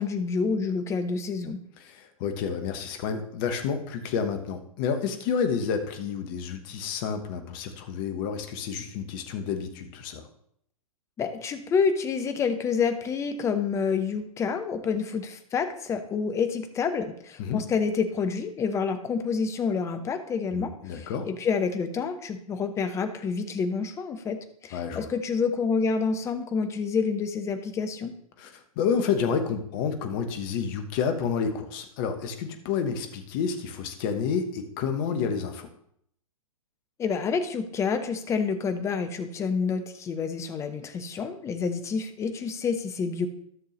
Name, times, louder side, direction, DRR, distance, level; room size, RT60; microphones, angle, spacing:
voice 1, 0.0-1.6 11.2-28.1 37.0-43.3, left 5 dB, 15° left, 8 dB, 0.7 m, -28 dB
voice 2, 1.8-10.3 17.4-17.6 20.5-21.3 24.7-25.1 28.4-35.7, left 6 dB, 35° left, 7 dB, 1.1 m, -29 dB
13.0 x 6.6 x 3.0 m, 0.68 s
figure-of-eight pair, 110°, 19 cm